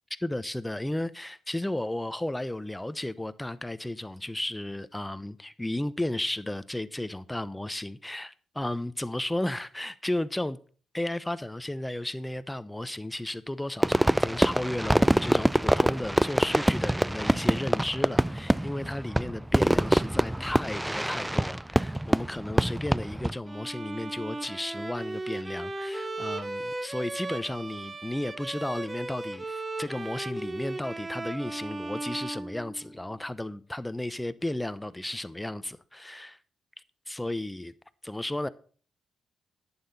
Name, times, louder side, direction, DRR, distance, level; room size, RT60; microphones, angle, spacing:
voice 1, 0.2-10.6 10.9-36.4 37.1-37.7 38.0-38.5, left 1 dB, 10° left, 0.9 m, -34 dB
Fireworks, 13.8-23.4, right 1 dB, 10° right, 0.4 m, -25 dB
Bowed string instrument, 23.5-33.2, right 2 dB, 30° right, 1.0 m, -37 dB
11.0 x 8.9 x 4.2 m
hypercardioid pair, 45°, 0 cm